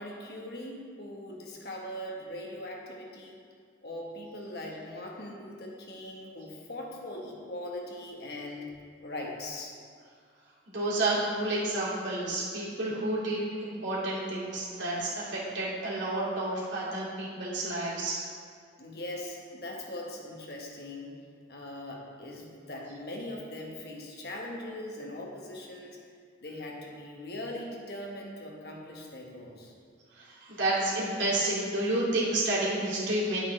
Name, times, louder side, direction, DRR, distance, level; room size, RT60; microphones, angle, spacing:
voice 1, 0.0-3.4 3.8-8.7 9.0-9.7 18.8-21.1 21.5-26.0 26.4-29.7, left 1 dB, 55° left, -1 dB, 1.3 m, -40 dB
voice 2, 10.7-18.2 30.4-33.4, right 2 dB, 75° right, -6 dB, 2.5 m, -30 dB
9.8 x 8.5 x 3.3 m, 2.1 s
head